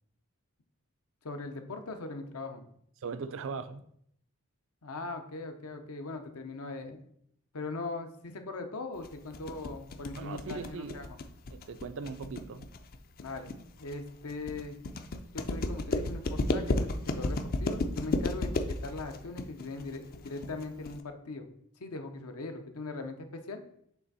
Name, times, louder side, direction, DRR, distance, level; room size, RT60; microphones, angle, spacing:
voice 1, 1.2-2.7 4.8-7.0 7.5-11.2 13.2-14.8 15.3-21.5 21.8-23.6, left 3 dB, 75° left, 0.8 m, -40 dB
voice 2, 3.0-3.8 10.2-11.0 11.5-12.7, right 5 dB, 60° right, 0.4 m, -39 dB
sound 1, 9.0-21.0, left 2 dB, 40° left, 0.4 m, -33 dB
6.9 x 3.4 x 4.0 m
head